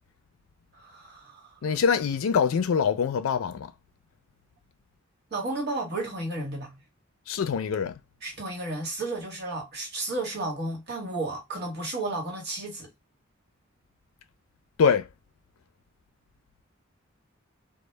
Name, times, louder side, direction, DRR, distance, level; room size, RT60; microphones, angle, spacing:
voice 1, 0.7-1.6 5.3-6.8 8.2-12.9, right 2 dB, 55° right, 1.1 m, -33 dB
voice 2, 1.6-3.7 7.3-8.0 14.8-15.1, left 6 dB, 90° left, 0.4 m, -24 dB
2.1 x 2.0 x 3.1 m
head